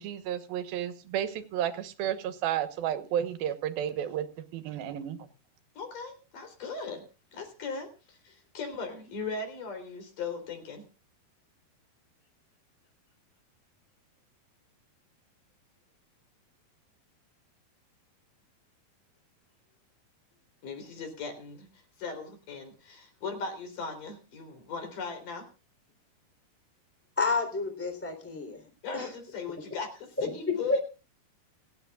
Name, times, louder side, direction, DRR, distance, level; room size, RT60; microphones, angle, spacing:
voice 1, 0.0-4.3 4.5-5.2, right 10 dB, 75° right, 10 dB, 2.9 m, -32 dB
voice 2, 5.8-7.0 7.3-10.8 20.6-25.5 28.8-30.8, left 4 dB, 55° left, 7 dB, 5.1 m, -38 dB
voice 3, 27.2-28.6 28.9-29.1 30.2-30.3 30.7-30.8, left 2 dB, 5° left, 6 dB, 2.9 m, -29 dB
29.5 x 10.0 x 2.4 m, 0.32 s
omnidirectional pair, 4.6 m